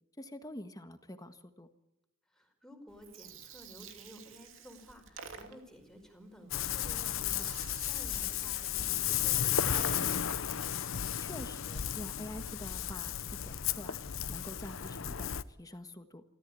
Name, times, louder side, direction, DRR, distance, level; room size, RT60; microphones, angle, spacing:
voice 1, 0.2-1.7 11.2-14.0 14.3-16.2, left 1 dB, 20° left, 9 dB, 1.6 m, -46 dB
voice 2, 2.3-10.1, equal, 5° left, 4 dB, 4.9 m, -53 dB
Gurgling, 2.9-10.4, right 6 dB, 65° right, 2.7 m, -51 dB
Ocean, 6.5-15.4, left 10 dB, 70° left, 0.8 m, -34 dB
27.5 x 14.0 x 8.6 m, 0.89 s
head